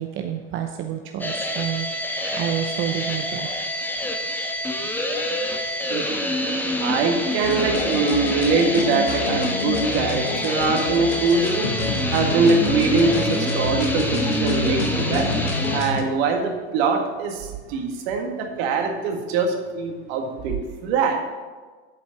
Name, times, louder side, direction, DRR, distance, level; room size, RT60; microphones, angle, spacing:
voice 1, 0.0-3.5, right 10 dB, 35° right, 5 dB, 0.7 m, -29 dB
sound 1, 1.2-15.8, left 1 dB, 5° left, 1.0 m, -27 dB
voice 2, 6.8-11.7 12.1-15.3 15.7-20.6 20.8-21.2, right 4 dB, 60° right, 3 dB, 1.8 m, -23 dB
sound 2, 7.4-16.0, left 2 dB, 75° left, 1.5 m, -27 dB
8.3 x 5.2 x 6.8 m, 1.4 s
hypercardioid pair, 95°, 35 cm